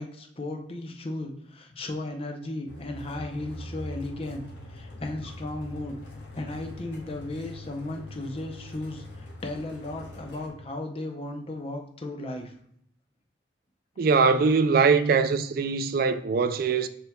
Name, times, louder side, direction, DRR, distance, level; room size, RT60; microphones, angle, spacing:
voice 1, 0.0-4.4 4.7-6.0 6.4-12.5, left 2 dB, 35° left, 0.6 m, -35 dB
sound 1, 2.7-10.5, left 1 dB, 75° left, 1.3 m, -43 dB
voice 2, 14.0-16.9, right 5 dB, 55° right, 0.4 m, -22 dB
6.9 x 3.4 x 2.3 m
head